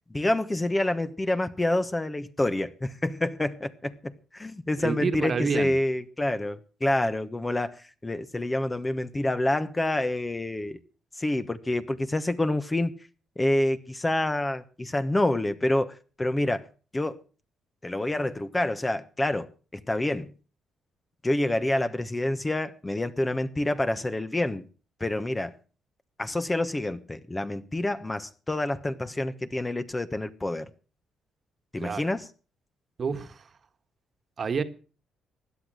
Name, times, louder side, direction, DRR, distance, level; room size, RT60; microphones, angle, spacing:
voice 1, 0.1-10.8 11.2-12.9 13.4-16.7 16.9-17.2 17.8-20.3 21.2-24.7 25.0-25.5 26.2-30.7 31.7-32.3, left 1 dB, 15° left, 1.2 m, -27 dB
voice 2, 4.8-5.8 31.8-32.1 33.0-33.5 34.4-34.6, right 5 dB, 45° right, 1.6 m, -29 dB
16.5 x 10.5 x 6.4 m
cardioid pair, 90°, 0 cm